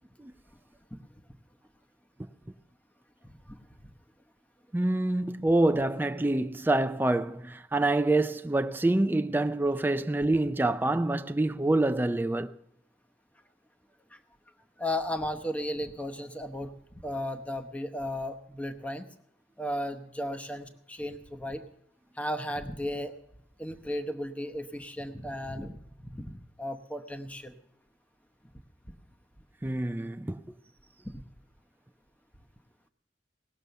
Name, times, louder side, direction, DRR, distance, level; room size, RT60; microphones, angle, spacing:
voice 1, 3.2-3.9 14.1-14.2 14.8-16.7 17.0-19.1 19.6-21.6 22.2-23.1 23.6-25.8 26.1-27.5 31.0-31.2, left 1 dB, 10° left, 0.8 m, -35 dB
voice 2, 4.7-12.5 29.6-30.4, right 2 dB, 10° right, 0.4 m, -26 dB
18.0 x 6.8 x 6.7 m
head